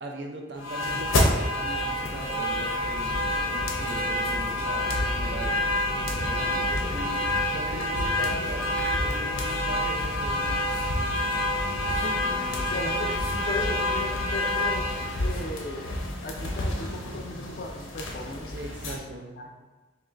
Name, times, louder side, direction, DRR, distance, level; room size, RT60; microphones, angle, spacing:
voice 1, 0.0-5.6 6.0-7.2 7.5-10.8 18.5-19.3, right 1 dB, 55° right, 1 dB, 0.5 m, -39 dB
sound 1, 0.6-19.0, left 1 dB, 85° left, 0.7 m, -28 dB
voice 2, 7.7-8.1 12.0-18.5 19.4-19.5, left 2 dB, 45° left, 2 dB, 0.4 m, -37 dB
4.4 x 3.0 x 2.5 m, 1.3 s
head